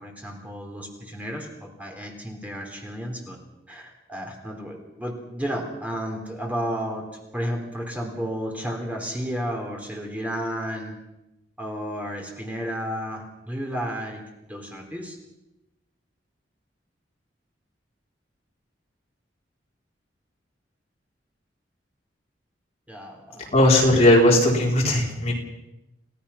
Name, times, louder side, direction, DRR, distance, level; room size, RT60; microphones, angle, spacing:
voice 1, 0.0-3.4 3.7-7.1 7.3-10.9 11.6-14.2 14.5-15.2 22.9-23.4, equal, 10° right, 1 dB, 3.6 m, -32 dB
voice 2, 23.3-25.3, left 1 dB, 35° left, -2 dB, 4.8 m, -18 dB
29.0 x 17.5 x 5.8 m, 0.94 s
head